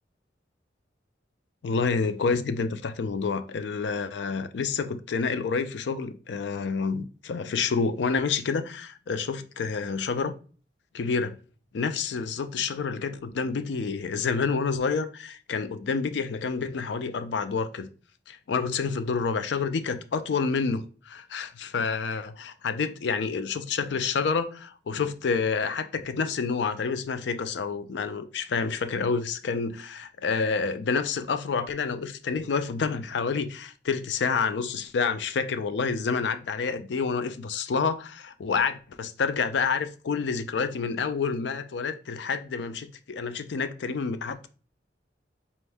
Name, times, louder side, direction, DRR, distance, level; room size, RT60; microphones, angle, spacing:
voice 1, 1.6-10.3 10.9-11.4 11.7-17.9 18.3-44.5, left 5 dB, 70° left, 0.4 m, -28 dB
4.3 x 2.6 x 3.4 m
head